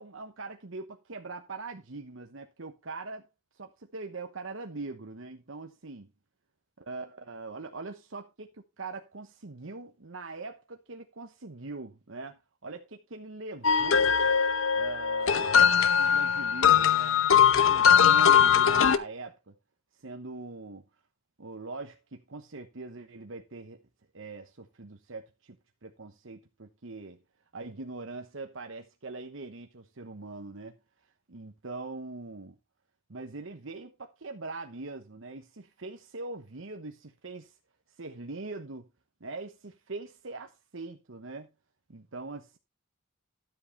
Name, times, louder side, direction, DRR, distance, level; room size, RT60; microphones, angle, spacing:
voice 1, 0.0-3.2 3.5-6.1 6.9-14.1 14.7-19.5 19.9-20.8 21.4-23.8 24.1-25.6 25.8-27.2 27.5-30.8 31.3-32.6 33.1-37.6 38.0-38.9 39.2-41.5 41.9-42.6, right 3 dB, 65° right, 1.1 m, -42 dB
sound 1, 13.6-19.0, left 7 dB, 75° left, 0.9 m, -21 dB
12.5 x 7.9 x 3.3 m
head